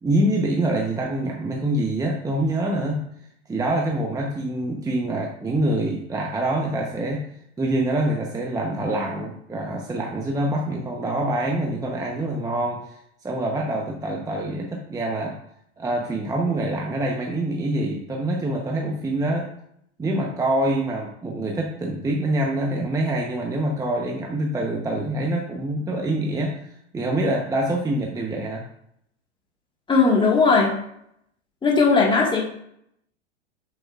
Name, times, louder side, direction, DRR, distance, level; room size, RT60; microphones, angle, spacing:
voice 1, 0.0-3.0 3.5-7.3 7.6-13.0 13.2-15.4 15.8-19.5 20.0-26.7 26.9-28.6, right 1 dB, 10° right, -1 dB, 0.9 m, -25 dB
voice 2, 29.9-30.7 31.6-32.4, left 4 dB, 15° left, 0 dB, 1.7 m, -18 dB
7.7 x 7.5 x 2.4 m, 0.72 s
hypercardioid pair, 120°, 35 cm